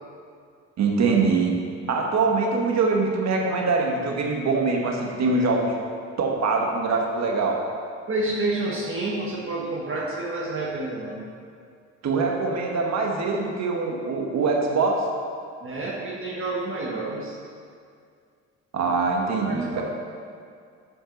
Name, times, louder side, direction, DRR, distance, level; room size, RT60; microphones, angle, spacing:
voice 1, 0.8-1.6 1.9-5.7 6.2-7.6 12.0-15.1 18.7-19.8, right 4 dB, 60° right, 1 dB, 1.5 m, -23 dB
voice 2, 8.1-11.2 15.6-17.3 19.4-19.8, right 2 dB, 45° right, -4 dB, 1.4 m, -29 dB
10.0 x 6.0 x 4.0 m, 2.3 s
cardioid pair, 90°, 30 cm